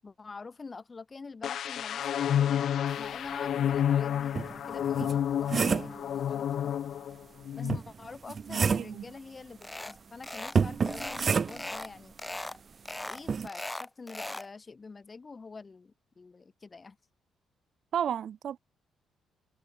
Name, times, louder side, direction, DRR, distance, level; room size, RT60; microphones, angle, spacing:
voice 1, 0.0-6.7 7.5-12.1 13.0-17.0, left 4 dB, 30° left, 7.0 m, -46 dB
sound 1, 1.4-7.1 7.4-7.8, left 10 dB, 65° left, 1.5 m, -30 dB
sound 2, 3.7-3.8 4.4-6.0 7.7-9.0 10.6-11.8 13.3-13.5, right 5 dB, 40° right, 1.3 m, -29 dB
voice 2, 8.5-9.1 17.9-18.6, right 9 dB, 60° right, 1.8 m, -33 dB
sound 3, 9.6-10.0 10.2-10.6 10.8-11.9 12.2-12.6 12.9-14.5, left 1 dB, 10° left, 1.3 m, -39 dB
cardioid pair, 90°, 0 cm